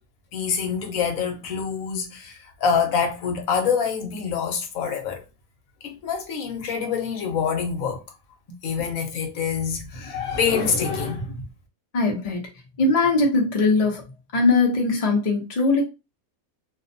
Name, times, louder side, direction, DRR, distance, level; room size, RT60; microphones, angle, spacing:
voice 1, 0.3-5.2 5.8-8.0 8.6-11.4, left 6 dB, 75° left, 1.0 m, -26 dB
voice 2, 11.9-12.4 12.8-14.0 14.3-15.8, left 3 dB, 40° left, 0.5 m, -20 dB
2.5 x 2.1 x 2.6 m
omnidirectional pair, 1.5 m